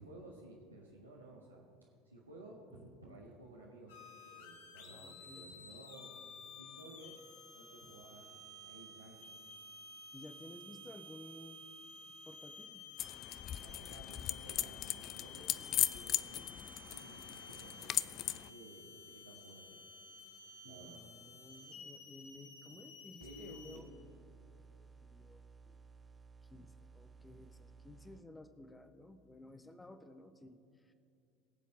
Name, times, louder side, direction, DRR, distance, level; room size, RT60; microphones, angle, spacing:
voice 1, 0.0-1.7 2.0-4.0 4.2-6.2 6.4-7.2 7.5-9.2 13.6-16.6 16.9-19.8 20.6-21.1 23.2-23.8, right 1 dB, 90° right, -5 dB, 1.4 m, -55 dB
voice 2, 2.7-3.2 4.8-5.5 10.1-11.6 12.0-12.8 20.6-23.9 25.0-25.8 26.5-30.9, left 1 dB, 10° left, 10 dB, 1.0 m, -55 dB
sound 1, 3.9-23.8, left 3 dB, 65° left, 1.6 m, -53 dB
sound 2, 13.0-18.5, left 11 dB, 45° left, 0.4 m, -38 dB
sound 3, 23.2-28.2, right 5 dB, 20° right, 0.7 m, -58 dB
21.5 x 7.4 x 4.3 m, 2.5 s
figure-of-eight pair, 70°, 0 cm